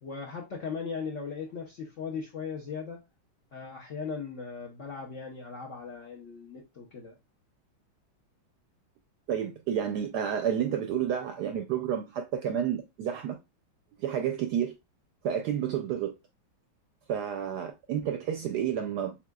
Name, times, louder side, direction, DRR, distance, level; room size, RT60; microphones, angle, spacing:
voice 1, 0.0-3.0 3.5-7.2, left 5 dB, 60° left, 0.8 m, -38 dB
voice 2, 9.3-13.4 14.0-14.7 15.2-16.1 17.1-19.1, right 9 dB, 75° right, 1.0 m, -30 dB
7.1 x 2.4 x 2.2 m
omnidirectional pair, 2.2 m